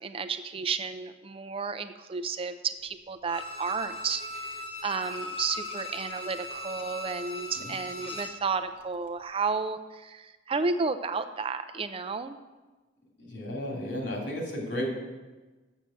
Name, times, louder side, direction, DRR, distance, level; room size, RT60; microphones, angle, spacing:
voice 1, 0.0-4.5 4.8-12.4, right 5 dB, 30° right, 10 dB, 0.4 m, -32 dB
Bowed string instrument, 3.3-8.5 8.8-8.9, left 1 dB, 30° left, 1.0 m, -39 dB
voice 2, 13.2-14.9, left 1 dB, 75° left, -1 dB, 3.0 m, -33 dB
7.3 x 6.8 x 7.6 m, 1.2 s
head